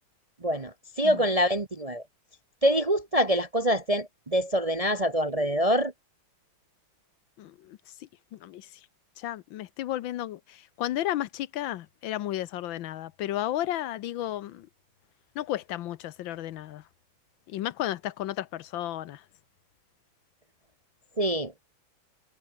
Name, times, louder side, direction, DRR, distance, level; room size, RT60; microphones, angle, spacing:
voice 1, 0.4-2.0 2.6-5.9 21.2-21.5, equal, 30° right, 0.7 m, -25 dB
voice 2, 7.4-7.8 8.3-8.7 9.2-14.7 15.3-16.8 17.5-19.2, left 13 dB, 75° left, 1.4 m, -33 dB
omnidirectional pair, 2.2 m